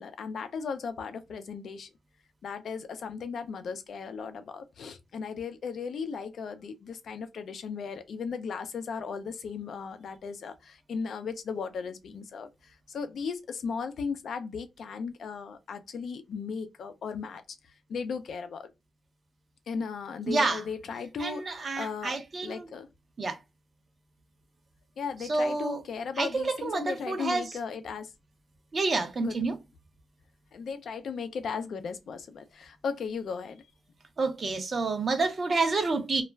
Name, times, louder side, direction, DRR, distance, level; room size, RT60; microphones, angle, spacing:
voice 1, 0.0-1.9 2.4-17.4 17.9-18.7 19.7-22.9 25.0-28.1 29.2-29.4 30.5-33.7, left 5 dB, 70° left, 0.4 m, -36 dB
voice 2, 20.3-20.6 21.2-22.7 23.2-23.4 25.3-25.8 26.2-27.4 28.7-29.6 34.2-36.2, right 3 dB, 40° right, 0.7 m, -28 dB
2.3 x 2.1 x 3.1 m
cardioid pair, 110°, 0 cm